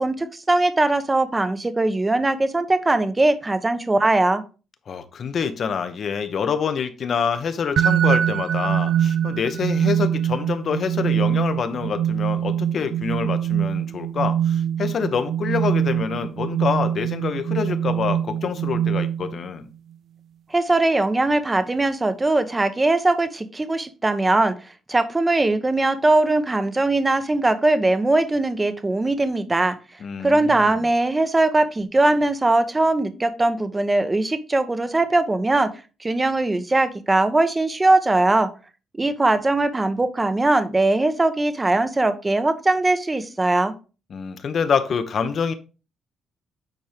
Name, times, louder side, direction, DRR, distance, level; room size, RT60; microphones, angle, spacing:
voice 1, 0.0-4.4 20.5-24.5 24.9-29.8 30.2-35.7 36.0-38.5 38.9-43.7, right 2 dB, 20° right, 1.0 m, -20 dB
voice 2, 4.9-19.7 30.0-30.9 44.1-45.5, left 6 dB, 55° left, 1.1 m, -26 dB
sound 1, 7.8-19.5, right 9 dB, 60° right, 0.3 m, -23 dB
9.3 x 4.4 x 3.5 m
cardioid pair, 90°, 0 cm